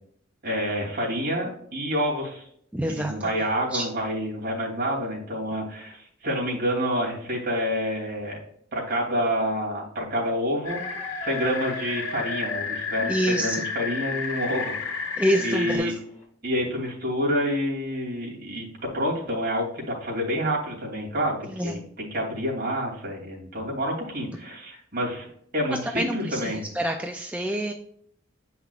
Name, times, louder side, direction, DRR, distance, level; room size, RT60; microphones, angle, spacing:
voice 1, 0.4-2.5 2.9-8.4 8.7-10.8 11.2-15.2 15.4-15.9 16.4-18.7 18.9-25.3 25.5-26.7, equal, 50° right, -2 dB, 2.7 m, -28 dB
voice 2, 2.7-3.1 3.7-3.9 13.0-13.6 15.2-15.9 21.5-21.7 26.0-27.7, right 1 dB, 5° right, 3 dB, 0.4 m, -27 dB
sound 1, 10.6-15.8, left 5 dB, 80° left, 1.8 m, -32 dB
sound 2, 10.6-16.2, equal, 40° left, 2.5 m, -42 dB
8.5 x 5.7 x 2.4 m, 0.65 s
head